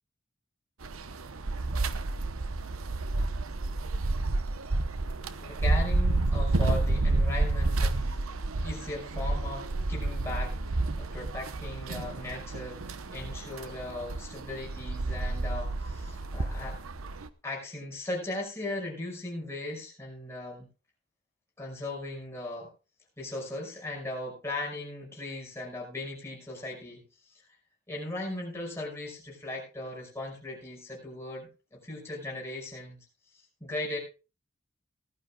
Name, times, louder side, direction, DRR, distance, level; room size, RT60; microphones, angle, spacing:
sound 1, 0.8-17.3, right 2 dB, 80° right, 0.8 m, -30 dB
voice 1, 5.4-8.2 8.5-10.6 11.0-16.8 17.4-20.7 21.6-22.7 23.2-27.0 27.9-33.0 33.6-34.0, left 2 dB, 10° left, -3 dB, 5.5 m, -38 dB
19.0 x 12.0 x 2.3 m, 0.31 s
head